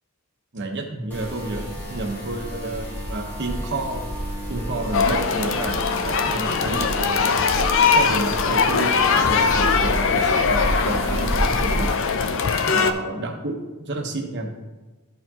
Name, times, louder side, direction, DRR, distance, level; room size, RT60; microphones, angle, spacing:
voice 1, 0.5-4.1 4.5-5.8 6.0-7.5 7.9-11.9 12.6-14.5, right 2 dB, 55° right, 3 dB, 1.0 m, -30 dB
sound 1, 1.1-12.0, equal, 10° left, 1.5 m, -30 dB
Bowed string instrument, 4.5-9.6, right 1 dB, 30° left, 0.9 m, -39 dB
sound 2, 4.9-12.9, left 5 dB, 60° left, 0.5 m, -21 dB
12.5 x 4.5 x 2.9 m, 1.2 s
head